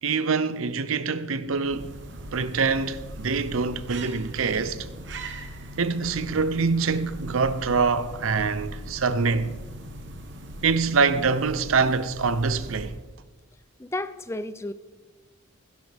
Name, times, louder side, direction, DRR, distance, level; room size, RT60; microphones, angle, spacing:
voice 1, 0.0-1.9 2.3-4.9 5.8-9.5 10.6-13.0, right 4 dB, 80° right, 0.7 m, -25 dB
sound 1, 1.4-13.2, right 1 dB, 55° right, 1.0 m, -40 dB
voice 2, 13.8-14.7, left 2 dB, 15° left, 0.4 m, -32 dB
16.0 x 11.0 x 3.5 m
head